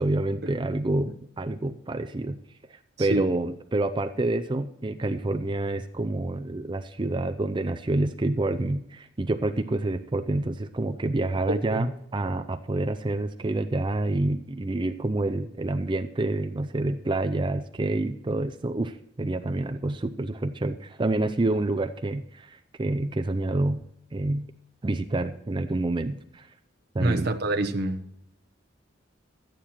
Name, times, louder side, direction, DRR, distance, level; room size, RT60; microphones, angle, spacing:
voice 1, 0.0-2.4 2.7-23.8 24.1-24.5 24.8-26.5 26.9-27.3, right 2 dB, 25° right, 0.5 m, -28 dB
voice 2, 11.5-11.9 27.0-28.0, right 2 dB, 55° right, 1.0 m, -26 dB
13.0 x 9.1 x 4.4 m
head